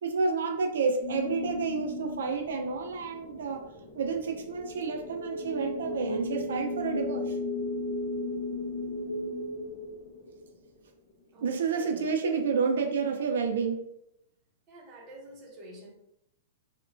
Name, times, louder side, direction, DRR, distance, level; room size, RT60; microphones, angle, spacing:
voice 1, 0.0-3.6 3.9-7.4 11.4-13.8, right 5 dB, 90° right, 5 dB, 0.3 m, -30 dB
sound 1, 1.0-10.8, left 2 dB, 45° left, 0.5 m, -36 dB
voice 2, 11.3-12.1 14.7-15.9, right 1 dB, 20° right, -2 dB, 0.6 m, -48 dB
2.9 x 2.1 x 2.5 m, 0.81 s
supercardioid pair, 165°, 0 cm